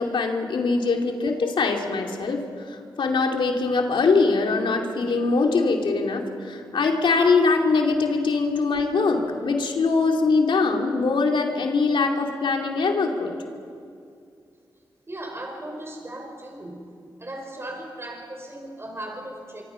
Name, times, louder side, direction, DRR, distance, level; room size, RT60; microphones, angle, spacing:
voice 1, 0.0-13.3, left 4 dB, 75° left, 2 dB, 2.7 m, -22 dB
voice 2, 15.1-16.9 17.2-19.6, right 1 dB, 30° right, 2 dB, 4.9 m, -37 dB
25.5 x 24.5 x 5.8 m, 2.4 s
supercardioid pair, 40°, 9 cm